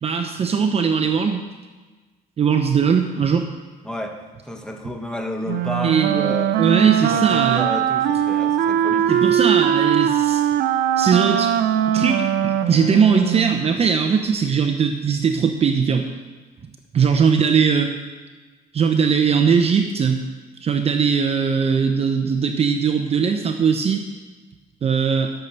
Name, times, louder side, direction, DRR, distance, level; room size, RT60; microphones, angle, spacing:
voice 1, 0.0-1.4 2.4-3.5 5.8-7.7 9.1-10.4 11.0-16.1 16.9-17.9 18.7-20.2 20.6-24.0 24.8-25.3, right 6 dB, 35° right, 5 dB, 0.8 m, -20 dB
voice 2, 3.8-4.2 4.4-6.5 6.8-9.1, left 1 dB, 5° left, 2 dB, 1.4 m, -31 dB
Wind instrument woodwind instrument, 5.5-13.6, right 10 dB, 75° right, 0.6 m, -20 dB
11.5 x 6.8 x 5.9 m, 1.3 s
cardioid pair, 110°, 17 cm